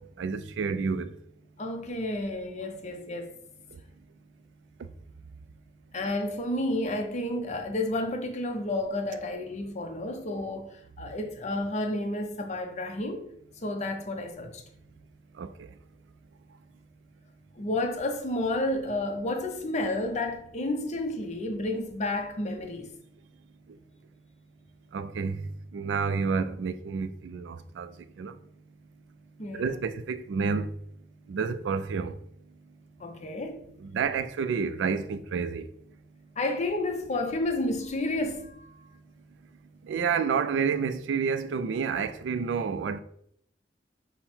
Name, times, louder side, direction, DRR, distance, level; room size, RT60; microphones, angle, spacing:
voice 1, 0.2-1.1 15.4-15.7 24.9-25.4 25.7-27.9 28.2-28.4 29.5-30.7 31.3-32.2 33.8-35.7 39.9-43.0, right 5 dB, 80° right, 0.3 m, -29 dB
voice 2, 1.6-3.3 5.9-13.3 13.6-14.6 17.6-22.9 29.4-29.7 33.0-33.6 36.4-38.7, left 1 dB, 40° left, 0.6 m, -31 dB
5.5 x 2.1 x 4.3 m
head